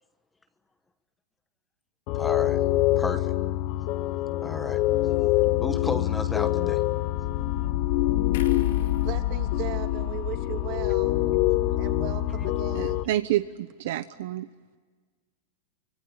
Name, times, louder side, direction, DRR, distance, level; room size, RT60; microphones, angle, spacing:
sound 1, 2.1-13.0, left 15 dB, 45° left, 1.0 m, -25 dB
voice 1, 2.1-2.6 3.0-3.3 4.4-4.8 5.6-6.8, left 3 dB, 10° left, 9 dB, 1.2 m, -32 dB
sound 2, 8.3-11.7 12.1-12.2, left 5 dB, 65° left, 6.6 m, -47 dB
voice 2, 8.8-11.2 11.8-13.0, right 12 dB, 45° right, 5 dB, 3.1 m, -37 dB
voice 3, 12.7-14.5, right 13 dB, 60° right, 11 dB, 0.9 m, -28 dB
25.0 x 24.5 x 9.6 m, 1.4 s
supercardioid pair, 150°, 0 cm